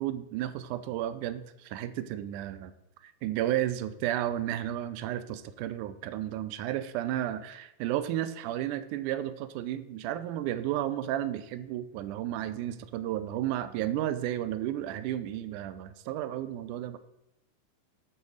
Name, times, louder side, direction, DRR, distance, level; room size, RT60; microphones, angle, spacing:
voice 1, 0.0-2.8 3.0-17.0, right 12 dB, 85° right, 12 dB, 2.2 m, -33 dB
12.5 x 4.4 x 6.4 m, 0.84 s
omnidirectional pair, 3.5 m